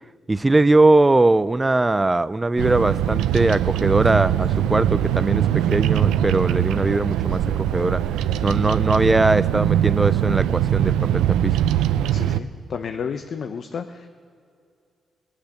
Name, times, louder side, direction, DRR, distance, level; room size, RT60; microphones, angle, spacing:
voice 1, 0.3-8.0 8.4-11.6, right 2 dB, 20° right, 16 dB, 0.4 m, -20 dB
Bird vocalization bird call bird song, 2.6-12.4, right 11 dB, 90° right, 0.4 m, -21 dB
voice 2, 12.1-14.1, left 6 dB, 60° left, 8 dB, 0.6 m, -32 dB
18.5 x 8.3 x 6.5 m, 2.4 s
supercardioid pair, 60°, 0 cm